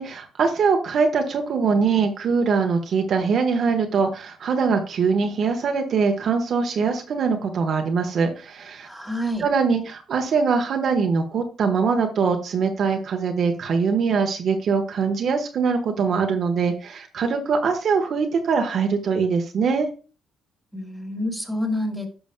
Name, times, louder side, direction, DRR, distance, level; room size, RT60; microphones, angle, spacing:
voice 1, 0.0-8.9 9.4-19.9, right 5 dB, 60° right, 4 dB, 1.2 m, -22 dB
voice 2, 8.8-9.4 20.7-22.1, left 1 dB, ahead, 1 dB, 2.3 m, -28 dB
10.5 x 6.1 x 2.2 m, 0.35 s
cardioid pair, 90°, 0 cm